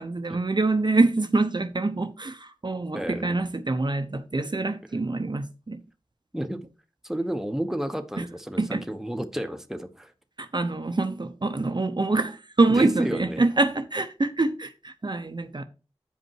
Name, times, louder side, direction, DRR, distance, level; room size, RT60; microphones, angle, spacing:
voice 1, 0.0-5.8 8.2-8.3 8.6-8.8 10.4-15.6, right 3 dB, 45° right, 0.8 m, -25 dB
voice 2, 2.9-3.4 6.3-6.6 7.0-10.1 12.7-13.5, right 1 dB, 5° right, 1.1 m, -31 dB
8.7 x 5.2 x 4.7 m
wide cardioid pair, 65°, 11 cm